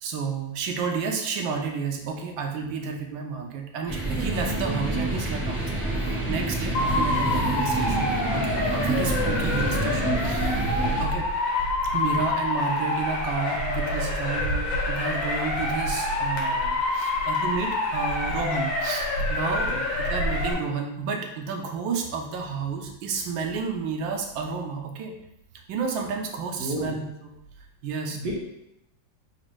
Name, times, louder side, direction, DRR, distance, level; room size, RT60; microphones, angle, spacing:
voice 1, 0.0-5.8 6.3-10.7 11.0-11.2 11.9-19.7 20.0-25.1 25.7-27.0 27.8-28.2, right 5 dB, 90° right, 2 dB, 1.4 m, -31 dB
sound 1, 3.9-11.0, right 2 dB, 10° right, 0.7 m, -27 dB
Motor vehicle (road) / Siren, 6.7-20.5, left 2 dB, 85° left, 1.6 m, -27 dB
voice 2, 26.6-26.9 28.1-28.4, right 1 dB, 65° right, -3 dB, 1.2 m, -32 dB
4.2 x 2.5 x 4.5 m, 0.84 s
omnidirectional pair, 2.0 m